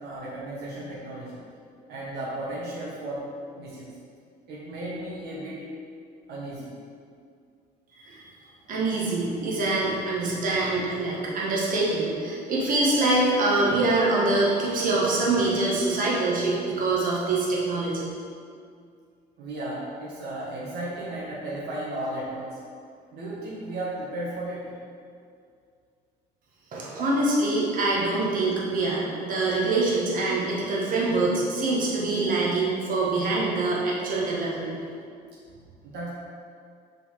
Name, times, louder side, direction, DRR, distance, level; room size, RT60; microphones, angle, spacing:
voice 1, 0.0-1.3 1.9-3.2 3.6-3.9 4.5-5.6 6.3-6.7 19.4-22.6 23.1-24.6 35.5-36.1, right 1 dB, 75° right, -7 dB, 1.4 m, -34 dB
voice 2, 8.7-18.0 26.7-34.7, right 2 dB, 55° right, -5 dB, 1.7 m, -24 dB
5.7 x 4.1 x 5.6 m, 2.3 s
cardioid pair, 110°, 17 cm